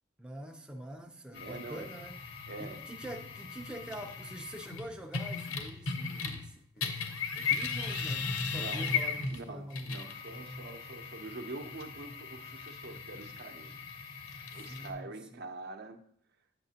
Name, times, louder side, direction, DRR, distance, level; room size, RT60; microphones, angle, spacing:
voice 1, 0.2-2.1 2.6-9.9 14.6-15.5, equal, 5° right, 3 dB, 0.4 m, -45 dB
sound 1, 1.3-6.5 6.8-14.9, left 5 dB, 80° left, 1.0 m, -37 dB
voice 2, 1.3-1.9 2.5-3.0 8.5-9.0 9.3-13.8 14.5-16.0, right 3 dB, 50° right, 8 dB, 0.6 m, -45 dB
8.0 x 7.6 x 2.8 m, 0.66 s
head